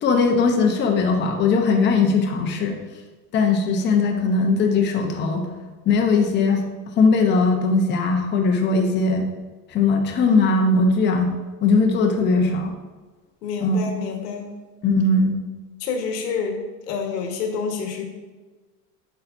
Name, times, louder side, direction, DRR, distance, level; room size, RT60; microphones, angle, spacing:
voice 1, 0.0-2.8 3.3-5.5 5.9-6.6 7.0-9.3 9.7-11.3 11.6-12.7 13.6-13.8 14.8-15.4, left 3 dB, 25° left, 2 dB, 0.8 m, -19 dB
voice 2, 13.4-14.5 15.8-16.6 16.9-18.0, left 5 dB, 80° left, 3 dB, 1.5 m, -28 dB
8.8 x 5.6 x 2.7 m, 1.3 s
supercardioid pair, 140°, 48 cm